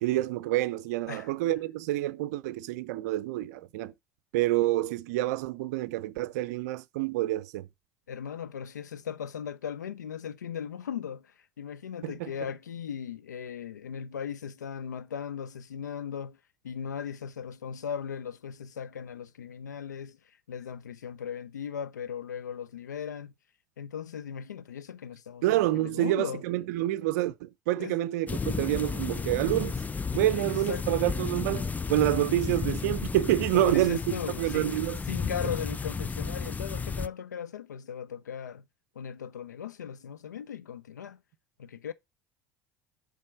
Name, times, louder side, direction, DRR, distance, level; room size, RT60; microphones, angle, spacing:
voice 1, 0.0-3.9 4.3-7.7 12.0-12.3 25.4-29.8 30.1-34.0 34.4-35.0, right 15 dB, 70° right, 0.5 m, -28 dB
voice 2, 8.1-16.4 16.6-23.3 23.8-26.4 27.8-28.0 30.4-30.8 33.5-34.8 35.1-38.6 38.9-41.2 41.6-41.9, left 8 dB, 85° left, 0.6 m, -38 dB
sound 1, 28.3-37.1, left 5 dB, 15° left, 0.4 m, -33 dB
7.4 x 3.5 x 6.1 m
hypercardioid pair, 70°, 9 cm